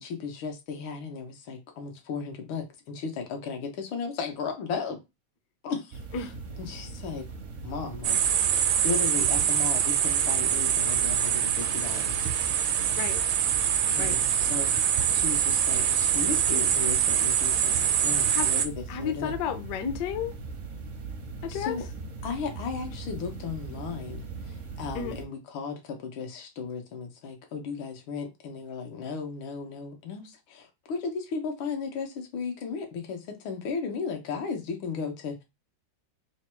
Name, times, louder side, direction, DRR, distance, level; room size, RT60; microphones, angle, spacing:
voice 1, 0.0-5.0 5.6-6.3 6.6-7.3 7.6-8.2 8.6-12.3 13.9-14.7 15.1-19.3 21.5-21.9 22.2-35.4, left 5 dB, 90° left, 1.7 m, -35 dB
sound 1, 5.9-25.3, right 3 dB, 65° right, 0.7 m, -40 dB
sound 2, 8.0-18.7, right 9 dB, 80° right, 1.3 m, -24 dB
voice 2, 17.8-18.5 18.9-20.3 21.4-21.8 24.9-25.2, left 8 dB, 70° left, 1.1 m, -32 dB
4.0 x 2.2 x 4.2 m
omnidirectional pair, 2.2 m